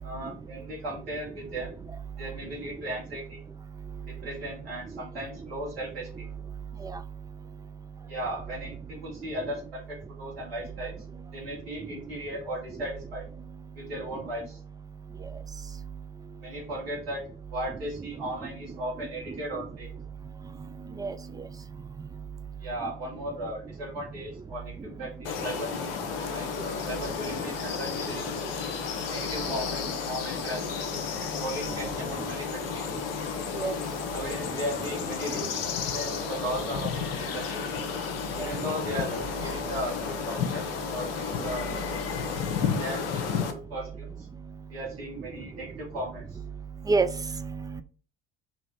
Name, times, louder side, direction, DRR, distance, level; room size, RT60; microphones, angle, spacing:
voice 1, 0.0-1.7 2.2-3.4 4.0-6.3 8.1-11.0 11.3-13.3 13.7-14.6 16.4-17.2 17.5-19.9 22.6-28.6 29.1-30.9 31.1-33.0 34.1-37.7 38.4-40.6 40.9-41.7 42.7-44.3 44.7-46.4, right 1 dB, 80° right, -4 dB, 2.0 m, -37 dB
sound 1, 25.3-43.5, left 6 dB, 65° left, 0.8 m, -32 dB
voice 2, 46.9-47.8, right 4 dB, 15° right, 9 dB, 0.4 m, -27 dB
4.2 x 3.0 x 4.2 m, 0.41 s
figure-of-eight pair, 60°, 30 cm